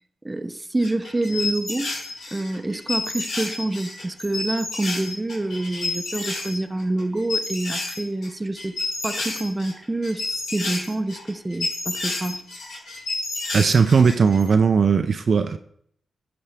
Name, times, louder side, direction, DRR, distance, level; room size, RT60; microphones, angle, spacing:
voice 1, 0.2-1.9 2.3-8.8 9.0-12.4, right 2 dB, 20° right, 11 dB, 0.7 m, -27 dB
sound 1, 0.8-6.5 6.8-8.3 8.6-14.4, left 3 dB, 80° left, 2.9 m, -30 dB
voice 2, 13.5-15.6, right 5 dB, 60° right, 9 dB, 0.4 m, -18 dB
11.0 x 4.9 x 3.4 m, 0.66 s
supercardioid pair, 45°, 0 cm